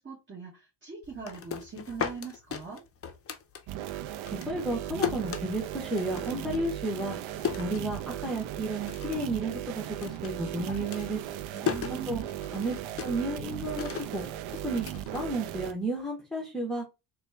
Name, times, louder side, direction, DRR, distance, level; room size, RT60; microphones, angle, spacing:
voice 1, 0.0-2.8 11.5-12.3, right 5 dB, 25° right, 1.4 m, -41 dB
sound 1, 1.0-4.0 4.3-8.4 8.7-9.3 9.6-15.9, left 8 dB, 30° left, 0.5 m, -37 dB
sound 2, 3.7-15.7, right 11 dB, 70° right, 0.6 m, -37 dB
voice 2, 4.4-7.2 7.6-11.2 11.9-12.2 12.5-14.2 14.6-14.8 15.1-16.8, right 2 dB, ahead, 0.9 m, -32 dB
3.9 x 2.3 x 3.3 m
cardioid pair, 90°, 48 cm